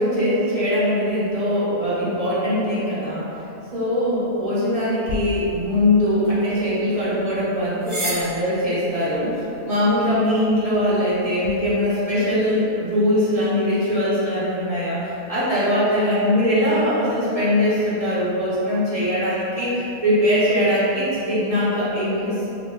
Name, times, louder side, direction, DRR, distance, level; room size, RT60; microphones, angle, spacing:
voice 1, 0.0-3.2 3.7-9.3 9.6-22.5, left 1 dB, 30° right, -10 dB, 1.0 m, -21 dB
sound 1, 5.0-11.5, equal, 65° right, 2.1 m, -36 dB
4.3 x 3.3 x 2.4 m, 2.8 s
omnidirectional pair, 1.4 m